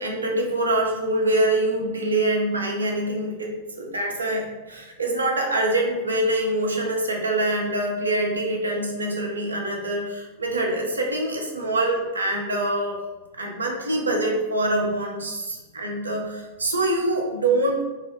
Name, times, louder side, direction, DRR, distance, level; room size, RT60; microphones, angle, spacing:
voice 1, 0.0-13.0 13.3-17.9, right 1 dB, 75° right, 0 dB, 0.4 m, -25 dB
2.0 x 2.0 x 3.2 m, 1.1 s
figure-of-eight pair, 90°, 0 cm